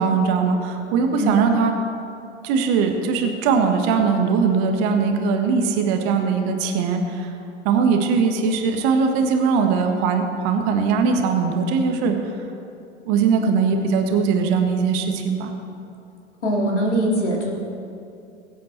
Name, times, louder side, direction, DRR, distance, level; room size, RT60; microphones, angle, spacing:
voice 1, 0.0-1.7 2.4-7.3 7.6-12.3 13.0-15.5, right 5 dB, 50° right, 4 dB, 1.6 m, -20 dB
voice 2, 16.4-17.5, right 1 dB, 80° left, -2 dB, 3.5 m, -22 dB
22.0 x 8.3 x 4.5 m, 2.6 s
figure-of-eight pair, 90°, 35 cm